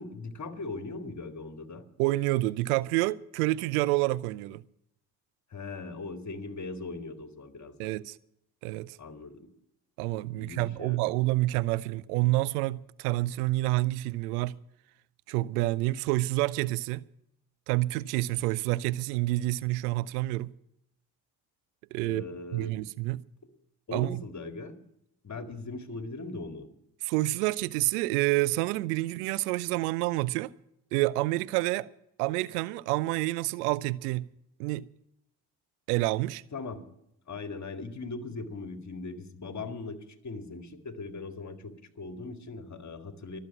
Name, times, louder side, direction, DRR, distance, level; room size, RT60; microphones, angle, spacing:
voice 1, 0.0-1.8 5.5-7.9 9.0-9.5 10.4-11.0 22.0-22.8 23.9-24.8 25.2-26.7 36.5-36.8 37.3-40.0 40.2-43.4, left 3 dB, 35° left, 2.2 m, -39 dB
voice 2, 2.0-4.6 7.8-8.2 8.6-9.0 10.0-14.6 15.3-17.0 17.7-20.5 21.9-22.2 22.5-23.2 23.9-24.2 27.0-30.5 30.9-31.9 32.2-34.3 34.6-34.9 35.9-36.4, right 19 dB, 70° right, 0.6 m, -28 dB
24.0 x 8.2 x 5.9 m
figure-of-eight pair, 40°, 48 cm